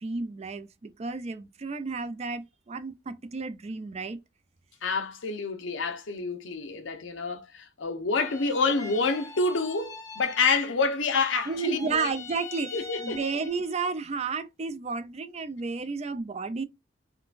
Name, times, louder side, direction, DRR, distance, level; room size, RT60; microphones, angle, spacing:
voice 1, 0.0-4.2 11.5-16.6, right 4 dB, 35° right, 0.4 m, -32 dB
voice 2, 4.8-12.1 12.7-13.2, left 4 dB, 75° left, 0.7 m, -28 dB
sound 1, 8.2-10.8 11.1-13.8, left 4 dB, 20° left, 0.7 m, -43 dB
3.7 x 2.2 x 2.4 m
head